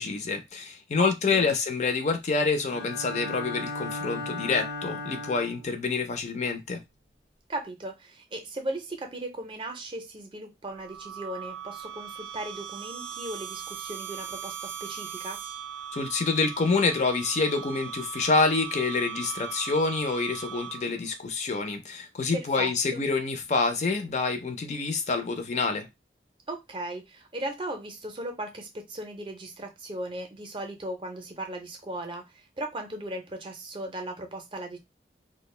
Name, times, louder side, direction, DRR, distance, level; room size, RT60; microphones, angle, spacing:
voice 1, 0.0-6.8 15.9-25.9, left 4 dB, 40° left, 0.4 m, -27 dB
voice 2, 1.0-1.5 7.5-15.4 22.3-23.1 26.5-34.8, right 1 dB, 30° right, 0.5 m, -37 dB
Bowed string instrument, 2.7-5.7, left 3 dB, 75° left, 0.8 m, -36 dB
sound 1, 10.7-21.1, right 9 dB, 90° right, 0.4 m, -39 dB
2.3 x 2.1 x 3.0 m
head